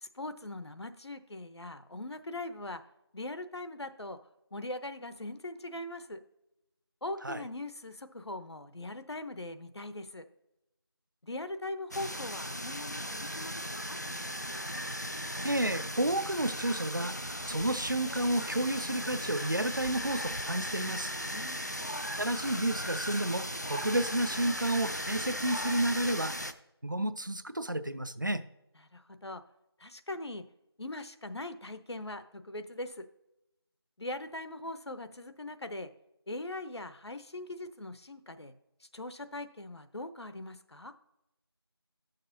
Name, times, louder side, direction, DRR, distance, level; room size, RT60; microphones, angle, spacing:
voice 1, 0.0-2.8 3.1-4.2 4.5-6.2 7.0-10.3 11.2-14.0 21.3-22.0 28.8-29.4 29.8-30.4 30.8-33.1 34.0-35.9 36.3-38.5 38.8-40.9, left 2 dB, 80° left, 10 dB, 0.7 m, -41 dB
sound 1, 11.9-26.5, equal, 40° left, 0.4 m, -37 dB
voice 2, 15.4-17.2 17.5-21.1 22.2-26.3 26.8-28.4, right 1 dB, 50° right, 13 dB, 0.4 m, -31 dB
12.5 x 6.6 x 2.7 m, 0.91 s
figure-of-eight pair, 180°, 14 cm